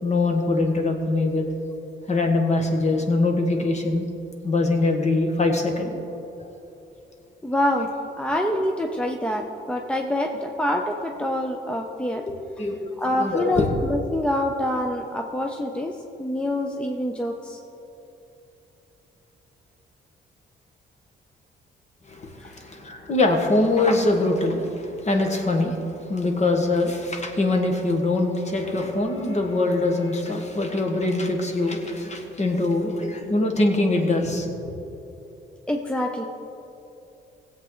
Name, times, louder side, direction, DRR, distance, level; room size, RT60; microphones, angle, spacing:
voice 1, 0.0-1.5 2.1-4.1 4.4-5.9 6.4-6.5 8.2-8.3 12.6-13.8 22.1-34.8, left 2 dB, 35° left, 3 dB, 1.6 m, -23 dB
voice 2, 7.4-7.9 8.2-12.2 13.0-17.6 22.4-22.5 35.7-36.3, left 1 dB, 5° left, 2 dB, 0.7 m, -26 dB
17.0 x 7.9 x 3.9 m, 2.9 s
cardioid pair, 90°, 20 cm